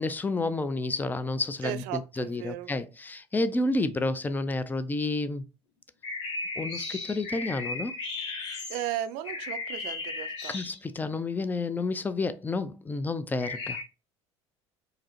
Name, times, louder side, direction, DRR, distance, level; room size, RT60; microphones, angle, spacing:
voice 1, 0.0-5.5 6.6-7.9 10.5-13.8, left 2 dB, 10° left, 0.4 m, -30 dB
voice 2, 1.6-2.7 8.7-10.6, right 12 dB, 65° right, 0.5 m, -35 dB
Offenbacher Vogel (EQ+), 6.0-11.1 13.4-13.8, left 3 dB, 80° left, 1.1 m, -36 dB
4.9 x 2.0 x 2.8 m
hypercardioid pair, 70°, 15 cm